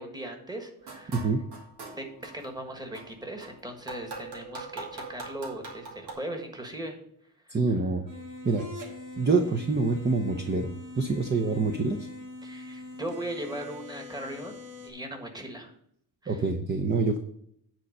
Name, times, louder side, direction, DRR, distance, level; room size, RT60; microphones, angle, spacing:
voice 1, 0.0-1.2 1.9-7.0 7.5-7.6 12.4-14.6 14.8-15.7 16.2-16.4, right 1 dB, 10° right, 4 dB, 1.5 m, -38 dB
sound 1, 0.8-2.5 2.9-6.1, right 3 dB, 90° right, 2.3 m, -42 dB
voice 2, 7.5-8.0 8.4-8.7 9.2-12.1 16.3-17.2, right 3 dB, 25° right, 5 dB, 0.7 m, -26 dB
sound 2, 8.1-14.9, left 2 dB, 50° right, 1.9 m, -43 dB
9.2 x 4.3 x 6.4 m, 0.69 s
wide cardioid pair, 150°, 39 cm